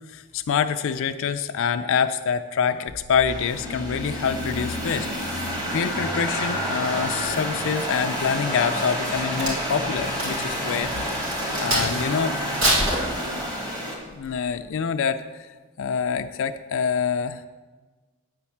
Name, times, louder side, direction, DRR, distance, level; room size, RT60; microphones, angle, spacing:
voice 1, 0.1-5.1 5.7-10.9 11.6-12.4 14.1-15.5 15.8-17.4, left 6 dB, 65° left, 8 dB, 0.4 m, -26 dB
sound 1, 2.9-12.6, equal, 90° right, 1.9 m, -41 dB
sound 2, 3.3-14.0, equal, 20° right, 1.6 m, -29 dB
Crack, 9.0-12.1 12.5-13.7 14.2-14.5, right 1 dB, 70° right, 2.7 m, -26 dB
9.1 x 4.3 x 7.1 m, 1.3 s
head